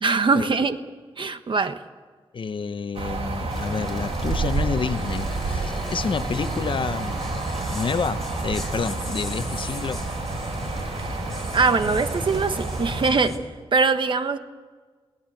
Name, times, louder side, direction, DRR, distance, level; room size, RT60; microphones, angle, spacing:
voice 1, 0.0-0.8 1.2-1.8 11.0-11.1 11.5-13.4 13.7-14.4, right 4 dB, 55° right, 9 dB, 1.3 m, -22 dB
voice 2, 2.3-7.4 7.7-10.0, left 5 dB, 60° left, 12 dB, 0.9 m, -29 dB
sound 1, 2.9-13.1, right 3 dB, 80° right, 2.7 m, -29 dB
sound 2, 3.5-13.4, left 1 dB, 5° left, 4.4 m, -36 dB
22.5 x 17.5 x 7.7 m, 1.5 s
wide cardioid pair, 90°, 10 cm